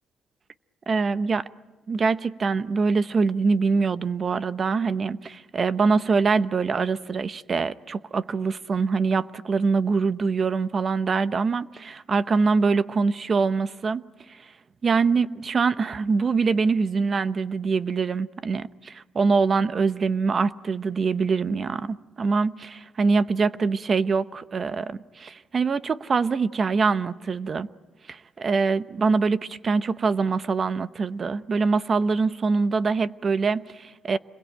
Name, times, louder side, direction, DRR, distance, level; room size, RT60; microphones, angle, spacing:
voice 1, 0.9-1.5 1.9-14.5 14.8-27.7 28.1-34.2, right 4 dB, 40° right, 0.8 m, -24 dB
27.5 x 22.0 x 9.0 m
cardioid pair, 90°, 0 cm